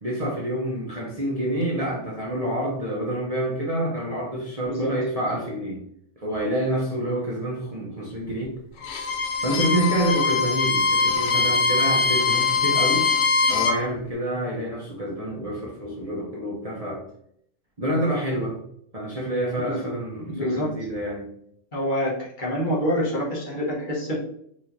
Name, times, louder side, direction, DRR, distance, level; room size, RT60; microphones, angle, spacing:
voice 1, 0.0-5.8 6.2-8.5 9.4-13.1 13.5-17.0 17.8-18.6 18.9-21.3, right 1 dB, 35° right, -4 dB, 0.8 m, -27 dB
Bowed string instrument, 8.8-13.8, left 4 dB, 80° left, 1.0 m, -22 dB
voice 2, 19.6-19.9 20.2-20.7 21.7-24.2, equal, 45° left, -5 dB, 1.2 m, -27 dB
4.7 x 2.9 x 2.6 m, 0.70 s
omnidirectional pair, 1.3 m